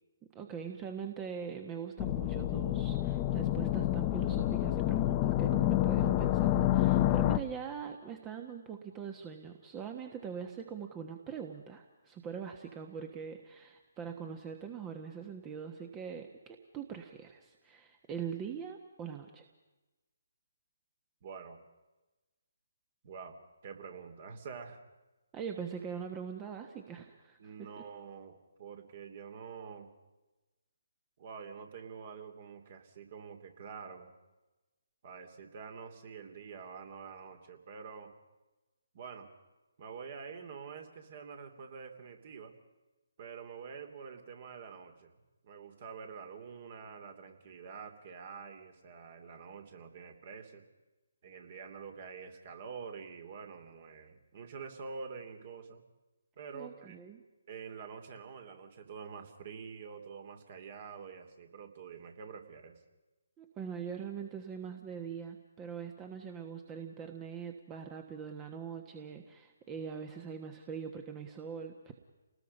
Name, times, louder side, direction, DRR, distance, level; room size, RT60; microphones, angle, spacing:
voice 1, 0.3-19.5 25.3-27.7 56.5-57.2 63.4-71.9, right 7 dB, 20° right, 5 dB, 1.4 m, -42 dB
sound 1, 2.0-7.4, left 14 dB, 25° left, 0.9 m, -28 dB
voice 2, 21.2-21.6 23.0-23.4 23.6-24.8 27.4-29.9 31.2-34.1 35.0-38.2 38.9-39.3 39.8-42.5 43.2-45.1 45.4-50.7 51.2-55.8 56.4-57.0 57.5-62.8, right 6 dB, 45° right, 6 dB, 2.9 m, -47 dB
29.5 x 19.5 x 5.5 m, 1.1 s
figure-of-eight pair, 145°, 0 cm